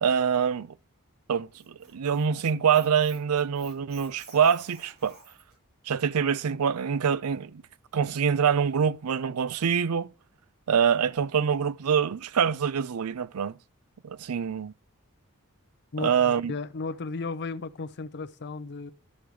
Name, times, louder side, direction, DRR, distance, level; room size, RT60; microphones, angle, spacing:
voice 1, 0.0-0.7 1.3-5.2 5.9-7.6 7.9-10.1 10.7-13.5 14.0-14.7 16.0-16.5, right 7 dB, 75° right, 0.5 m, -25 dB
Squeak, 1.3-5.5, right 2 dB, 45° right, 5.8 m, -52 dB
voice 2, 15.9-18.9, left 3 dB, 50° left, 0.6 m, -35 dB
11.5 x 6.5 x 4.6 m
head